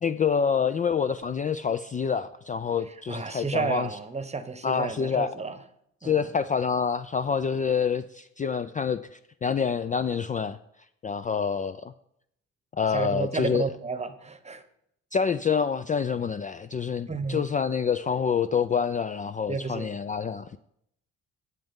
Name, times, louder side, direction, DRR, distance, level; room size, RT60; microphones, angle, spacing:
voice 1, 0.0-3.9 4.6-5.3 6.0-10.6 11.0-11.9 12.7-13.6 15.1-20.6, left 6 dB, 25° left, 0.4 m, -27 dB
voice 2, 2.9-5.6 6.0-6.3 12.9-14.6 17.1-17.5 19.5-19.9, right 4 dB, 20° right, 1.0 m, -32 dB
13.0 x 7.8 x 3.7 m
cardioid pair, 90°, 30 cm